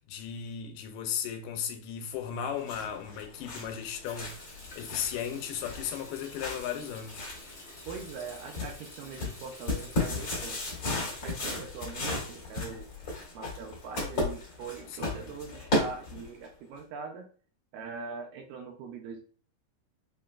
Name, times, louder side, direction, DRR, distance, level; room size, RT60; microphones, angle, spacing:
voice 1, 0.0-7.3 14.9-15.2, left 8 dB, 90° left, 2.5 m, -36 dB
sound 1, 2.3-16.5, left 2 dB, 45° left, 2.0 m, -36 dB
Water tap faucet, 3.9-11.7 12.0-13.0, left 1 dB, 65° left, 0.5 m, -50 dB
voice 2, 7.9-10.6 11.2-12.9 13.3-17.3 17.7-19.2, right 5 dB, 80° right, 2.0 m, -42 dB
5.6 x 2.5 x 2.2 m
omnidirectional pair, 4.2 m